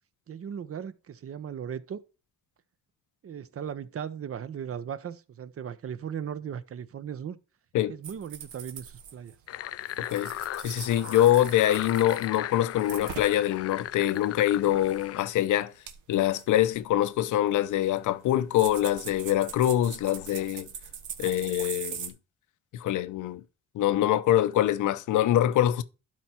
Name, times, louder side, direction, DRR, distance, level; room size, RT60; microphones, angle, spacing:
voice 1, 0.3-2.0 3.2-7.4 7.9-9.4, right 8 dB, 50° right, 1.0 m, -37 dB
sound 1, 8.0-9.6 9.9-13.5 13.8-15.1 15.4-15.5 15.9-22.1, right 8 dB, 80° right, 1.8 m, -42 dB
sound 2, 9.5-15.2, left 13 dB, 55° left, 0.5 m, -37 dB
voice 2, 10.0-10.3 10.6-15.7 16.1-20.7 21.2-22.1 22.7-23.4 23.7-25.8, left 12 dB, 80° left, 0.8 m, -24 dB
12.0 x 4.5 x 4.5 m
cardioid pair, 90°, 30 cm